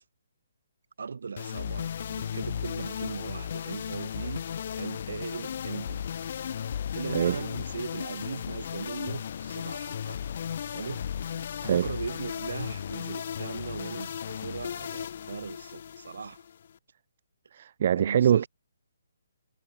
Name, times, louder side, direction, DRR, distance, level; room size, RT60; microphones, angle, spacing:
voice 1, 1.0-4.4 4.8-6.0 6.9-10.2 10.7-11.1 11.7-16.4 18.0-18.5, right 5 dB, 70° right, 5.4 m, -39 dB
sound 1, 1.4-16.8, left 8 dB, 50° left, 2.2 m, -35 dB
voice 2, 7.1-7.4 11.6-11.9 17.5-18.5, right 9 dB, 45° right, 0.6 m, -24 dB
hypercardioid pair, 150°, 0 cm